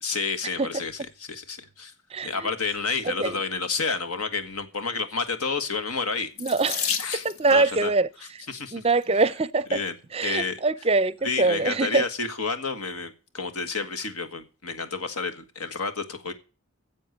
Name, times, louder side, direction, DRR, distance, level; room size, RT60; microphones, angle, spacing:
voice 1, 0.0-1.9 2.2-6.3 7.0-7.9 8.5-8.8 9.7-9.9 10.2-10.6 11.2-16.3, left 4 dB, 90° left, 1.7 m, -30 dB
Water tap faucet / Sink (filling or washing), 6.4-7.6 8.6-9.0 9.7-9.8 10.2-10.3, left 7 dB, 65° left, 1.2 m, -31 dB
voice 2, 6.4-6.9 7.2-8.1 8.7-9.8 10.1-12.0, right 3 dB, 25° right, 0.5 m, -23 dB
10.5 x 7.6 x 8.0 m
head